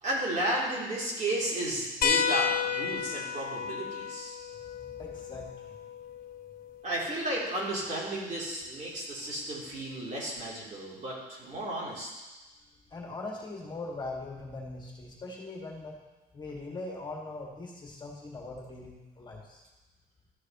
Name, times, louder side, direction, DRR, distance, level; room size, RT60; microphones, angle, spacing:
voice 1, 0.0-4.3 6.8-12.1, right 1 dB, 45° right, -5 dB, 3.2 m, -33 dB
sound 1, 2.0-7.1 8.6-8.7 10.4-10.5, left 7 dB, 60° left, 0.8 m, -32 dB
voice 2, 4.9-5.8 12.9-16.0 16.3-19.6, left 2 dB, 25° left, -2 dB, 1.8 m, -41 dB
13.5 x 6.6 x 3.0 m, 1.1 s
cardioid pair, 110°, 17 cm